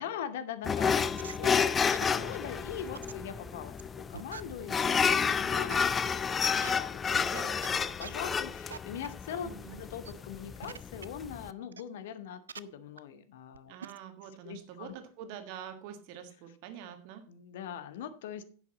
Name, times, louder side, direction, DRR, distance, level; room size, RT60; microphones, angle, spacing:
voice 1, 0.0-7.3 7.8-9.5 9.8-13.7 14.4-14.9 17.3-18.4, left 8 dB, 55° left, 13 dB, 0.9 m, -42 dB
sound 1, 0.6-11.5, left 6 dB, 20° left, 0.4 m, -30 dB
sound 2, 1.0-1.6 1.9-2.4 2.9-3.1 3.8-3.9 4.1-4.4 5.2-5.3 5.7-5.8 6.4-6.7 7.1-7.7 8.0-8.1 8.7-8.8 9.0-9.1 9.8-10.1 10.6-11.0 11.7-11.8 12.5-12.6 13.0-13.1 13.5-13.6 13.8-14.0, right 7 dB, 70° right, 0.4 m, -43 dB
voice 2, 7.1-7.8 9.4-9.8 13.7-17.2, right 9 dB, 45° right, 8 dB, 1.6 m, -46 dB
10.5 x 8.0 x 4.1 m, 0.43 s
figure-of-eight pair, 90°, 0 cm